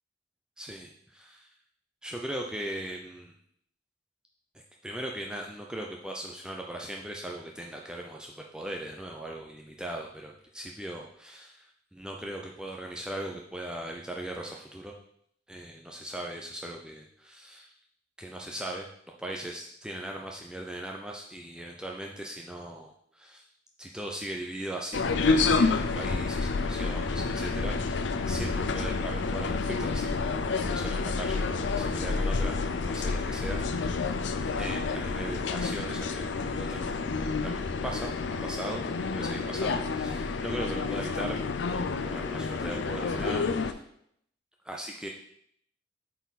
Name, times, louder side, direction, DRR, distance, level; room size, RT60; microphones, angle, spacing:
voice 1, 0.6-1.5 2.0-3.3 4.5-11.7 11.9-14.9 15.5-17.7 18.2-18.9 19.2-23.4 23.8-32.6 32.9-34.1 34.6-37.1 37.4-38.1 38.4-41.4 41.7-43.8 44.6-45.1, right 1 dB, 5° right, 0 dB, 0.5 m, -39 dB
sound 1, 24.9-43.7, left 4 dB, 70° left, 0.5 m, -29 dB
8.2 x 4.2 x 4.1 m, 0.70 s
head